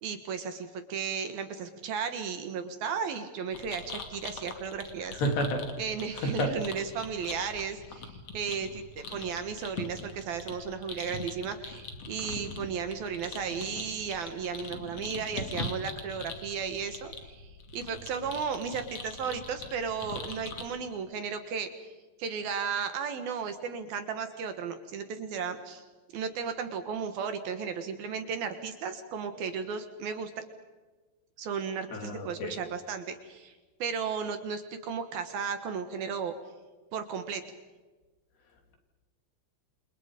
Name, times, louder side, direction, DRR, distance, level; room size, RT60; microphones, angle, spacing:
voice 1, 0.0-5.2 5.8-21.7 22.2-25.8 26.1-30.3 31.4-36.3 36.9-37.4, right 6 dB, 65° right, 8 dB, 3.0 m, -35 dB
sound 1, 3.5-20.6, left 3 dB, 40° left, 2.8 m, -42 dB
voice 2, 5.2-5.6 6.2-6.5 31.9-32.6, equal, 65° left, 3 dB, 5.7 m, -29 dB
29.0 x 28.0 x 5.2 m, 1.3 s
omnidirectional pair, 5.2 m